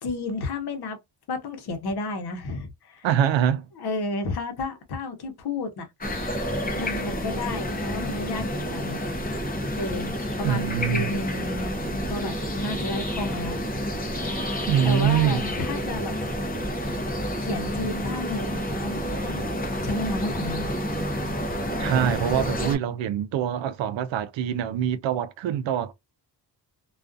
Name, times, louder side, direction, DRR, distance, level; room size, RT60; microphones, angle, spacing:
voice 1, 0.0-1.0 1.3-3.1 3.8-5.9 6.7-9.0 9.8-10.1 10.4-13.6 14.8-16.1 17.4-19.5 19.8-20.7, left 2 dB, 60° left, 0.9 m, -32 dB
voice 2, 3.0-3.7 10.4-11.2 14.7-15.5 21.8-25.9, right 9 dB, 85° right, 0.5 m, -24 dB
sound 1, 6.0-22.8, equal, 20° left, 0.6 m, -29 dB
2.3 x 2.3 x 2.5 m
wide cardioid pair, 165°, 44 cm